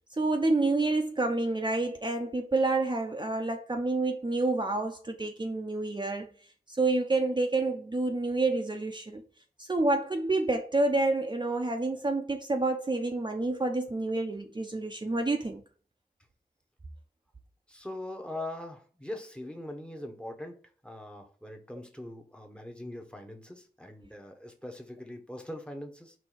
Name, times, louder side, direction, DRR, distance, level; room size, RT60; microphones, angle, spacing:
voice 1, 0.2-6.3 6.7-9.2 9.6-15.6, right 2 dB, 30° right, 0.6 m, -28 dB
voice 2, 17.7-20.6 20.8-26.1, left 1 dB, 5° left, 0.9 m, -41 dB
4.4 x 2.7 x 4.1 m
cardioid pair, 45°, 16 cm